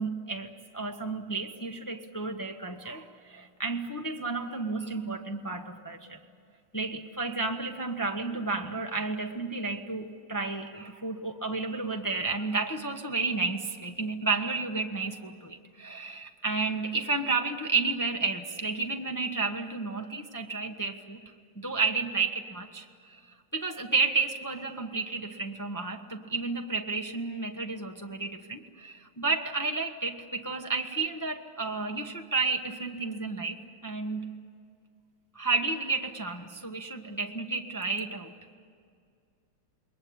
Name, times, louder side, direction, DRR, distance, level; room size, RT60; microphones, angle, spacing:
voice 1, 0.0-6.2 6.7-21.2 21.5-22.9 23.1-23.2 23.5-33.6 33.8-34.3 35.3-38.3, right 4 dB, 15° left, 3 dB, 0.7 m, -31 dB
28.5 x 21.5 x 8.7 m, 2.3 s
omnidirectional pair, 2.4 m